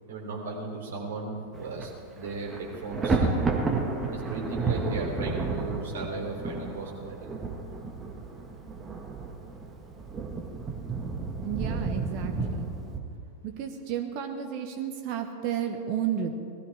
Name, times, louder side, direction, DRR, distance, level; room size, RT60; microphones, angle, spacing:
voice 1, 0.1-3.4 4.1-7.4, right 3 dB, 60° right, -1 dB, 3.5 m, -36 dB
Thunder, 1.5-1.9 2.2-13.0, right 3 dB, 20° right, 1.7 m, -31 dB
voice 2, 11.4-12.7 13.4-16.3, right 9 dB, 45° right, 5 dB, 1.2 m, -32 dB
19.0 x 13.5 x 4.8 m, 2.4 s
figure-of-eight pair, 90°, 0 cm